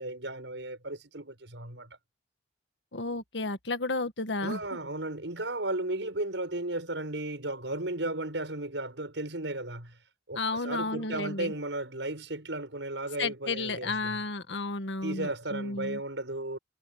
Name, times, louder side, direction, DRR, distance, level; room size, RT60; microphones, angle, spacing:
voice 1, 0.0-2.0 4.4-10.0 10.3-14.2 15.0-16.6, right 2 dB, 85° right, 6.3 m, -35 dB
voice 2, 2.9-4.6 10.4-11.5 13.2-16.0, left 3 dB, 75° left, 1.8 m, -32 dB
head